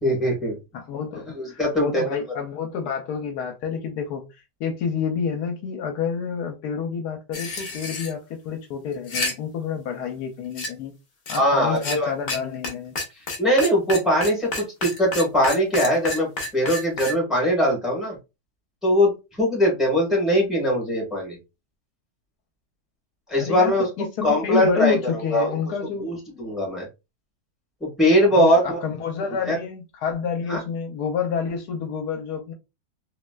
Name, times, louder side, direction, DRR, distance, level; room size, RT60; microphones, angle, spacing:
voice 1, 0.0-0.6 1.3-2.1 11.4-12.1 13.4-16.3 16.5-18.2 18.8-19.1 19.4-21.4 23.3-23.9 24.2-25.5 26.0-26.9 27.8-28.8 29.4-29.6 30.5-30.6, equal, ahead, 1.4 m, -21 dB
voice 2, 0.7-10.9 11.3-13.0 23.4-26.1 28.3-32.5, left 6 dB, 75° left, 1.1 m, -29 dB
sound 1, 7.3-8.1 8.9-9.3 10.6-10.7 11.3-11.4 11.8-12.0 12.3-12.4 12.6-12.7 13.0-17.1, left 2 dB, 45° left, 0.9 m, -29 dB
3.1 x 2.9 x 2.2 m
omnidirectional pair, 1.8 m